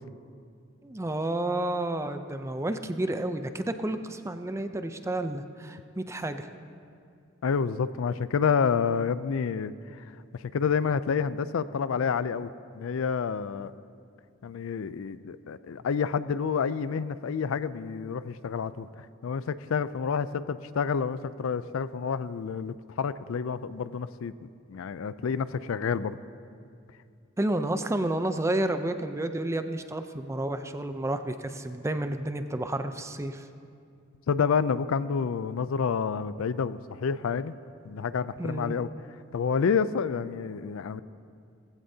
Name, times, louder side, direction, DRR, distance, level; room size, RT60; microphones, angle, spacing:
voice 1, 0.8-6.5 27.4-33.4 38.4-38.8, right 1 dB, 15° right, 8 dB, 0.5 m, -30 dB
voice 2, 7.4-9.7 10.4-13.7 14.4-18.9 19.2-26.2 34.3-37.5 37.9-38.9 39.3-41.0, left 6 dB, 75° left, 15 dB, 0.4 m, -29 dB
18.5 x 15.5 x 2.8 m, 2.4 s
head